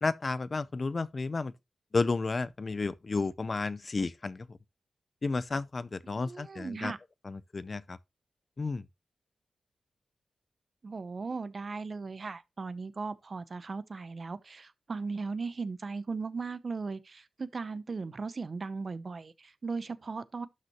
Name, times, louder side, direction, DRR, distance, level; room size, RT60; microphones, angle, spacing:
voice 1, 0.0-1.5 1.9-4.6 5.2-6.9 7.3-8.0 8.6-8.8, left 3 dB, 40° left, 0.5 m, -32 dB
voice 2, 6.0-7.0 10.8-20.5, right 4 dB, 45° right, 0.7 m, -37 dB
12.0 x 5.4 x 3.0 m
wide cardioid pair, 120°, 0 cm